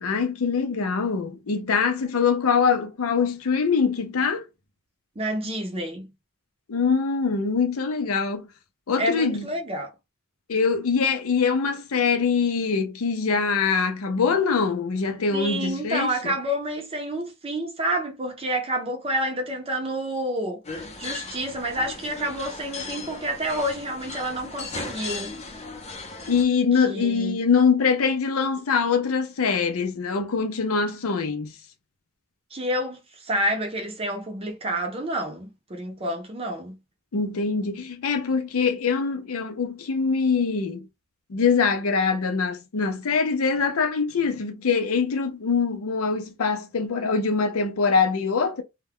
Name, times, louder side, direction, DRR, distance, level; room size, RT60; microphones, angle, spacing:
voice 1, 0.0-4.4 6.7-8.5 8.9-9.5 10.5-16.3 26.3-31.5 37.1-40.8 41.3-48.6, left 5 dB, 85° left, 0.5 m, -23 dB
voice 2, 5.2-6.1 9.0-9.9 15.3-25.3 26.9-27.4 32.5-36.8, right 1 dB, 25° right, 0.6 m, -29 dB
sound 1, 20.6-26.4, left 3 dB, 30° left, 0.6 m, -37 dB
2.2 x 2.2 x 3.5 m
head